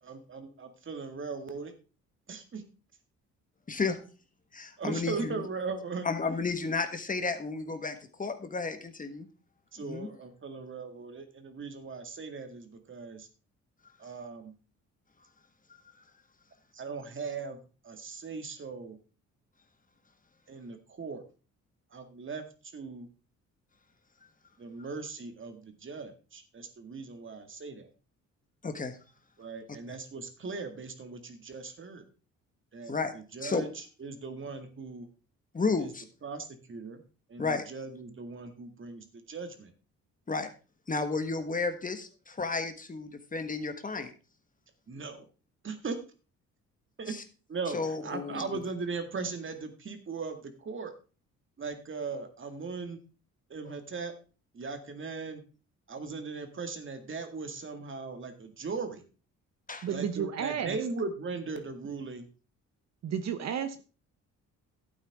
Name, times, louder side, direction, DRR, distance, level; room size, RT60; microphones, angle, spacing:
voice 1, 0.0-1.7 2.3-2.6 4.8-6.1 8.2-8.3 9.7-13.3 14.0-14.5 16.7-17.6 17.8-19.0 20.5-21.2 21.9-23.1 24.6-27.9 29.4-32.0 32.7-35.1 35.8-35.9 36.2-37.0 37.3-39.7 44.9-45.3 45.6-46.0 47.0-47.2 47.5-50.9 51.6-53.0 53.5-54.1 54.5-55.4 55.9-59.0 59.9-62.3, right 4 dB, 40° right, 6 dB, 2.1 m, -39 dB
voice 2, 3.7-4.0 4.5-5.3 6.0-9.3 9.8-10.1 28.6-29.0 32.9-33.1 33.4-33.6 35.5-36.0 37.4-37.6 40.3-40.5 40.9-44.1 47.7-48.4 59.7-59.9, left 4 dB, 25° left, 8 dB, 1.5 m, -32 dB
voice 3, 59.8-60.8 63.0-63.8, right 8 dB, 60° right, 9 dB, 1.0 m, -32 dB
12.0 x 8.7 x 3.6 m, 0.34 s
cardioid pair, 90°, 30 cm